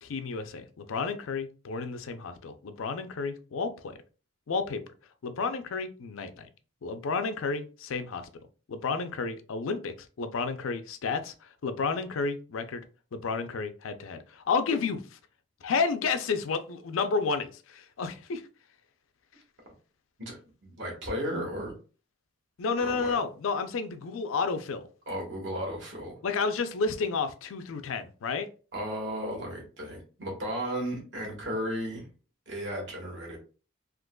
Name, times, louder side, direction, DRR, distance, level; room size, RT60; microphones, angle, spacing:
voice 1, 0.0-3.9 4.5-4.8 5.2-6.5 6.8-8.3 8.7-11.3 11.6-12.8 13.1-15.2 15.6-18.4 22.6-24.9 26.2-28.5, left 4 dB, 85° left, 0.5 m, -31 dB
voice 2, 20.2-21.7 22.8-23.2 25.1-26.1 28.7-32.1 32.5-33.4, equal, 65° right, 1.4 m, -34 dB
3.7 x 2.9 x 2.2 m
head